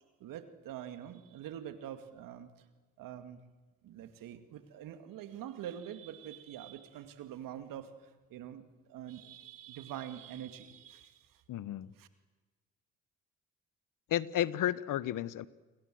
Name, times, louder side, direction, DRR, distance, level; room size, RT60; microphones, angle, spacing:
voice 1, 0.2-2.5 3.0-3.4 3.8-11.4 12.0-12.1, right 10 dB, 80° right, 9 dB, 2.3 m, -45 dB
voice 2, 11.5-11.9 14.1-15.5, left 12 dB, 70° left, 19 dB, 1.1 m, -32 dB
29.5 x 23.5 x 7.8 m, 1.3 s
supercardioid pair, 55°, 33 cm